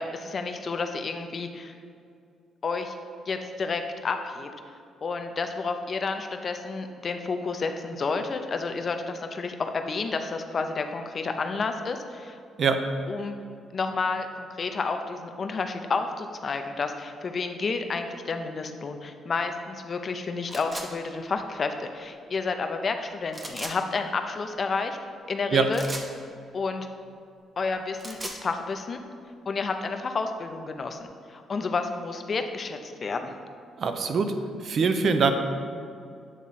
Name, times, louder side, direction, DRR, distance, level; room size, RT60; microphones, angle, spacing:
voice 1, 0.0-1.7 2.6-3.0 3.3-4.5 5.0-12.4 13.1-13.3 13.7-25.0 25.3-25.8 26.5-26.9 27.6-29.0 29.5-33.3, left 4 dB, 45° left, 6 dB, 0.5 m, -30 dB
sound 1, 20.5-20.9 23.3-23.8 25.7-26.1 27.8-28.4, right 1 dB, 25° right, 0.8 m, -37 dB
voice 2, 33.8-34.3 34.6-35.3, right 5 dB, 55° right, 7 dB, 0.5 m, -23 dB
8.5 x 3.6 x 4.1 m, 2.4 s
cardioid pair, 90°, 0 cm